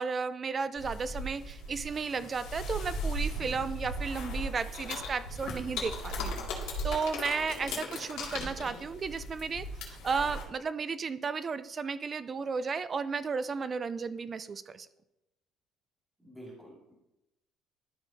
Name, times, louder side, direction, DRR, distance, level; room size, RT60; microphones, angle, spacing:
voice 1, 0.0-14.9, right 5 dB, 30° right, 13 dB, 0.4 m, -34 dB
sound 1, 0.8-10.4, left 1 dB, 85° left, 2.2 m, -37 dB
voice 2, 16.2-16.9, equal, 5° right, -5 dB, 2.3 m, -49 dB
13.0 x 5.5 x 2.7 m, 0.92 s
cardioid pair, 145°, 0 cm